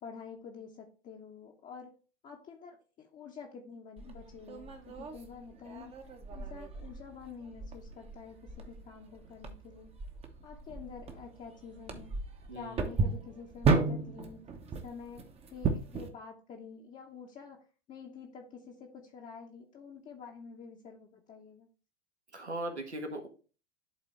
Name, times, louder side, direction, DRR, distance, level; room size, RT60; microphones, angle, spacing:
voice 1, 0.0-1.9 2.2-9.9 10.4-12.2 12.5-14.5 14.8-15.2 15.5-17.6 17.9-21.7, left 6 dB, 25° left, 0 dB, 0.9 m, -48 dB
sound 1, 4.0-16.1, right 4 dB, 20° right, 0.9 m, -35 dB
voice 2, 12.5-12.9 22.3-23.3, right 1 dB, 85° right, 4 dB, 1.5 m, -39 dB
11.0 x 3.8 x 3.2 m, 0.36 s
figure-of-eight pair, 90°, 33 cm